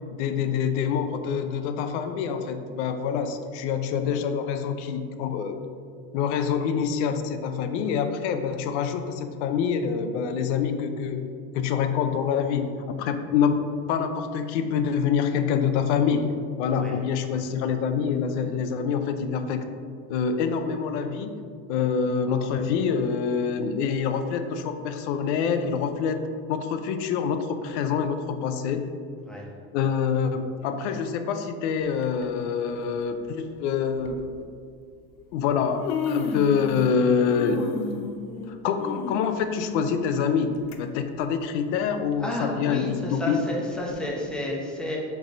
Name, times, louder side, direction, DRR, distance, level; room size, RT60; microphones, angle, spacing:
voice 1, 0.1-5.6 6.1-11.3 11.5-13.6 13.9-16.3 16.6-19.6 20.1-21.4 21.7-26.2 26.5-28.9 29.7-34.3 35.3-37.6 38.5-43.4, left 6 dB, 90° left, 8 dB, 0.6 m, -26 dB
Human voice, 32.0-32.2 33.3-33.4 34.0-34.2 35.2-35.3 35.6-37.0 37.2-40.8 41.2-41.3 42.1-42.2, left 5 dB, 50° left, 0.6 m, -32 dB
voice 2, 42.2-45.0, left 1 dB, ahead, -3 dB, 0.9 m, -31 dB
6.2 x 3.4 x 5.2 m, 2.2 s
cardioid pair, 155°, 33 cm